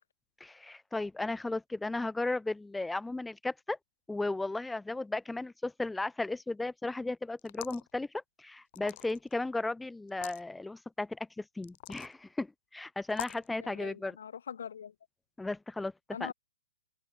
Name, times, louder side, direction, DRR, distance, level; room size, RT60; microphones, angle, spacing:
voice 1, 0.4-3.8 4.1-14.2 15.4-15.9 16.2-16.3, left 2 dB, 5° left, 0.3 m, -35 dB
sound 1, 7.4-7.9 8.7-9.3 10.1-10.4 11.6-12.1 13.1-13.5, left 19 dB, 45° left, 1.3 m, -43 dB
voice 2, 13.6-14.9 16.1-16.3, left 8 dB, 75° left, 1.7 m, -42 dB
open air
hypercardioid pair, 145°, 0 cm